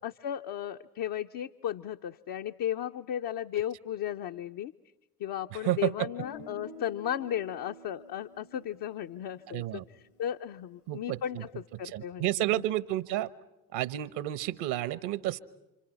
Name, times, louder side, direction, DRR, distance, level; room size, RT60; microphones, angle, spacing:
voice 1, 0.0-4.7 5.2-9.8 10.2-11.5 11.8-12.2 12.5-12.6, left 10 dB, 50° left, 5 dB, 0.9 m, -35 dB
voice 2, 5.5-6.1 9.5-9.8 10.9-11.4 11.7-13.3 13.7-15.4, right 14 dB, 65° right, 16 dB, 1.2 m, -31 dB
Guitar, 6.2-10.1, left 3 dB, 80° left, 6.4 m, -50 dB
29.0 x 27.0 x 5.9 m, 0.97 s
figure-of-eight pair, 50°, 44 cm